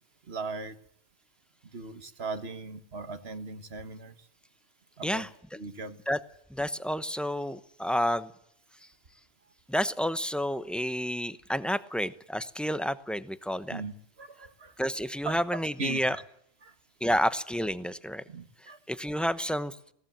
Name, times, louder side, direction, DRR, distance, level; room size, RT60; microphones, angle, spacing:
voice 1, 0.3-0.8 1.7-4.2 5.0-5.2 5.5-6.0 13.7-14.7 15.2-16.2 16.6-16.7 17.1-17.3 18.3-18.8, right 4 dB, 60° right, 11 dB, 1.7 m, -39 dB
voice 2, 6.5-8.3 9.7-13.8 14.8-16.2 17.0-18.2 18.9-19.8, equal, ahead, 13 dB, 0.9 m, -30 dB
21.0 x 18.0 x 9.1 m, 0.69 s
omnidirectional pair, 1.2 m